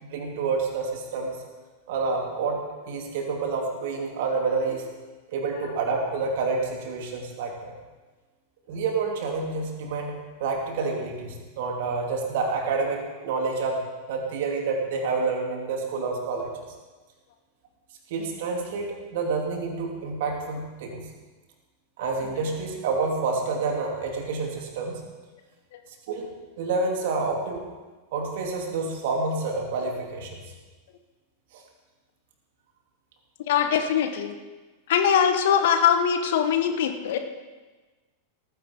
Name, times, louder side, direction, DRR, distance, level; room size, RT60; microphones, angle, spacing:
voice 1, 0.0-1.4 1.9-4.9 5.3-7.7 8.7-13.8 14.1-16.5 18.1-21.1 22.0-24.9 26.1-26.3 26.6-27.6 28.1-30.4 31.5-31.6, right 4 dB, 50° right, 1 dB, 2.9 m, -28 dB
voice 2, 33.5-34.3 34.9-37.2, left 8 dB, 55° left, 7 dB, 1.2 m, -22 dB
18.0 x 15.5 x 3.7 m, 1.3 s
figure-of-eight pair, 90°, 0 cm